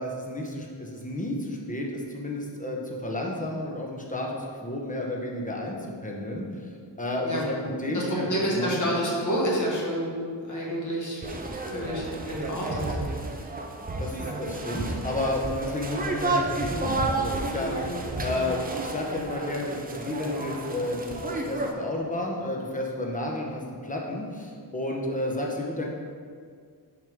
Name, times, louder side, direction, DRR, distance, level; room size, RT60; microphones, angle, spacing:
voice 1, 0.0-5.8 6.0-6.7 7.0-9.0 14.0-18.0 18.2-25.9, left 1 dB, 20° left, -1 dB, 0.9 m, -31 dB
voice 2, 7.8-10.1 10.4-11.2 11.7-12.9 14.2-14.4 17.6-18.5, equal, 45° left, -4 dB, 1.7 m, -29 dB
sound 1, 11.2-21.7, right 2 dB, 20° right, 0.5 m, -31 dB
6.2 x 5.4 x 3.6 m, 2.1 s
wide cardioid pair, 125°, 44 cm